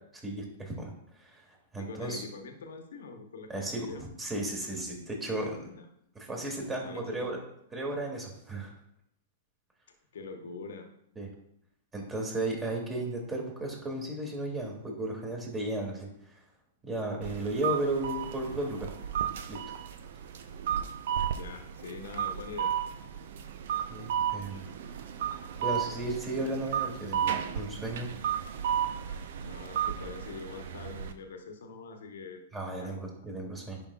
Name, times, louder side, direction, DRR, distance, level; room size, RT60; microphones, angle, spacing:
voice 1, 0.2-1.5 1.7-2.2 3.5-5.7 6.1-7.4 7.7-8.7 11.2-11.3 11.9-16.4 16.8-18.9 19.5-19.6 23.9-24.6 25.6-28.1 32.5-33.8, right 1 dB, 15° right, 0 dB, 2.4 m, -34 dB
voice 2, 1.8-4.1 5.6-5.8 6.8-7.3 10.1-10.9 21.3-22.7 29.4-32.4 32.7-32.9, left 4 dB, 70° left, 5 dB, 1.1 m, -44 dB
sound 1, 17.2-31.1, right 9 dB, 65° right, 0.7 m, -34 dB
10.5 x 5.6 x 2.4 m, 0.75 s
hypercardioid pair, 110°, 0 cm